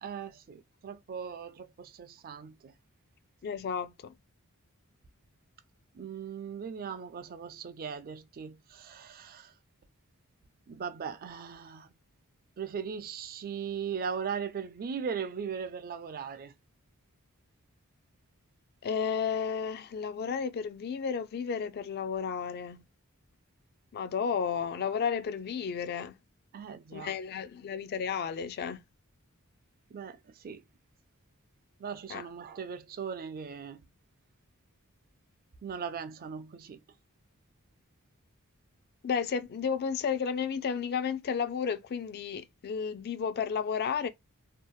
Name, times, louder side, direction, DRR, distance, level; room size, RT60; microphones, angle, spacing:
voice 1, 0.0-2.7 5.9-9.5 10.7-11.9 12.6-16.5 26.5-27.1 29.9-30.6 31.8-33.8 35.6-36.8, right 6 dB, 40° right, 0.4 m, -39 dB
voice 2, 3.4-4.1 18.8-22.8 23.9-26.1 26.9-28.8 32.1-32.2 39.0-44.1, left 6 dB, 45° left, 0.4 m, -32 dB
2.8 x 2.0 x 2.3 m
head